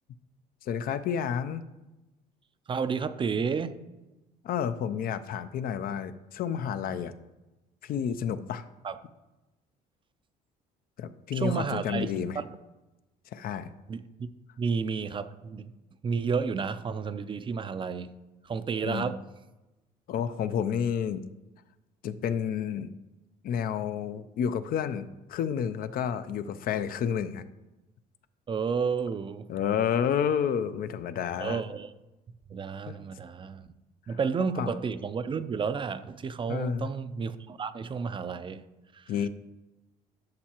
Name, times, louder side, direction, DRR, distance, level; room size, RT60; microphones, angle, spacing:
voice 1, 0.6-1.6 4.4-7.1 7.8-8.6 11.0-12.4 13.3-13.7 18.8-19.1 20.1-21.2 22.0-22.9 23.4-27.4 29.5-31.6 32.9-33.0 34.1-34.2 34.6-34.7 36.5-36.9 39.1-39.3, left 8 dB, 60° left, 12 dB, 0.5 m, -30 dB
voice 2, 2.7-3.7 8.8-9.0 11.3-12.5 13.9-14.3 14.6-15.7 16.0-18.1 18.4-19.2 28.5-29.5 31.4-31.9 32.5-33.7 34.1-38.6 38.9-39.1, right 5 dB, 30° right, 12 dB, 0.4 m, -31 dB
11.5 x 6.4 x 2.9 m, 1.0 s
cardioid pair, 110°, 17 cm